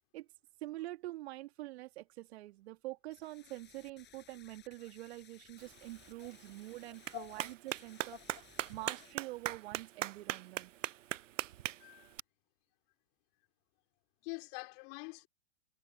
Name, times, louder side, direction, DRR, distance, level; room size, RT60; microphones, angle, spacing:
voice 1, 0.6-8.2 8.7-10.7, right 18 dB, 55° right, 2.7 m, -46 dB
sound 1, 3.1-9.1, left 11 dB, 30° left, 7.4 m, -62 dB
Clapping, 5.6-12.2, right 12 dB, 80° right, 0.6 m, -42 dB
voice 2, 7.1-7.5 8.6-8.7 11.8-12.1 14.2-15.3, left 36 dB, 45° left, 5.1 m, -45 dB
hypercardioid pair, 110°, 37 cm